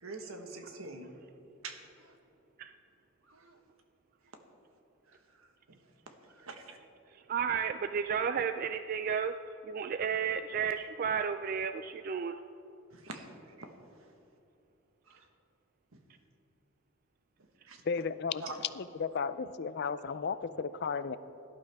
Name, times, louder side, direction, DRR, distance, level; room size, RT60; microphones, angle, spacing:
voice 1, 0.0-1.1 1.6-1.8 3.3-3.6 6.4-6.8 12.9-13.3 13.6-13.7 15.1-15.2 17.7-17.8 18.4-18.6, right 3 dB, 80° right, 5 dB, 1.4 m, -44 dB
voice 2, 7.1-9.3 9.6-12.4, right 7 dB, 45° right, 9 dB, 0.3 m, -32 dB
voice 3, 17.9-21.2, left 5 dB, 55° left, 14 dB, 0.4 m, -34 dB
17.5 x 11.0 x 3.5 m, 3.0 s
head